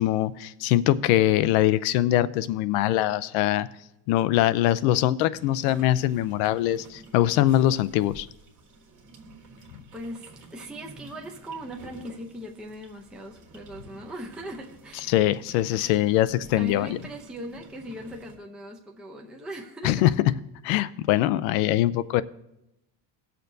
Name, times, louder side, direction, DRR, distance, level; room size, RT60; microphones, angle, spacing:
voice 1, 0.0-3.7 4.1-8.3 15.1-16.9 19.8-20.1 20.6-22.2, left 14 dB, 70° left, 15 dB, 0.6 m, -22 dB
sound 1, 5.3-18.4, right 2 dB, 45° right, 1.6 m, -49 dB
voice 2, 9.9-15.2 16.4-20.0, right 1 dB, ahead, 1 dB, 0.6 m, -39 dB
18.5 x 6.7 x 2.7 m, 0.86 s
cardioid pair, 140°, 44 cm